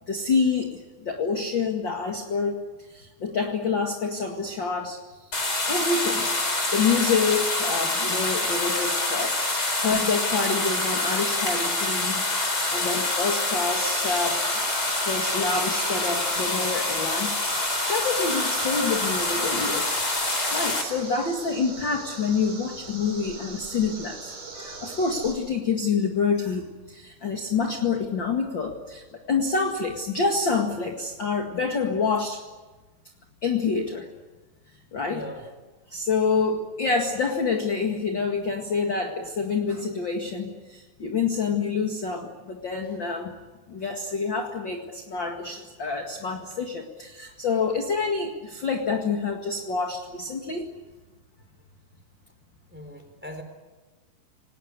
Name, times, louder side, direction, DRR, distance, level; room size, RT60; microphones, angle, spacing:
voice 1, 0.1-2.6 2.9-6.3 6.7-14.4 15.1-32.4 33.4-34.1 34.9-35.2 35.9-43.3 43.7-50.7, left 4 dB, 40° left, 3 dB, 1.9 m, -27 dB
sound 1, 5.3-20.8, left 2 dB, 25° left, 4.4 m, -26 dB
sound 2, 13.7-25.3, right 4 dB, 50° right, 6.9 m, -38 dB
voice 2, 35.1-35.5 52.7-53.4, left 1 dB, 5° right, 6 dB, 3.5 m, -39 dB
29.0 x 19.5 x 9.7 m, 1.2 s
omnidirectional pair, 4.7 m